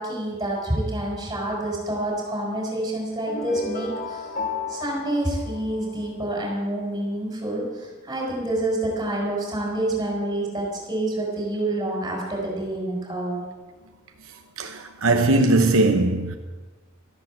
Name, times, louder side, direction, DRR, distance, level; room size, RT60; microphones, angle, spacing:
voice 1, 0.0-4.3 4.7-13.4, right 1 dB, 20° right, 5.0 m, -27 dB
sound 1, 3.3-6.3, left 3 dB, 50° left, 2.2 m, -33 dB
voice 2, 14.6-16.4, right 2 dB, 70° right, 0.9 m, -20 dB
13.5 x 10.5 x 7.4 m
head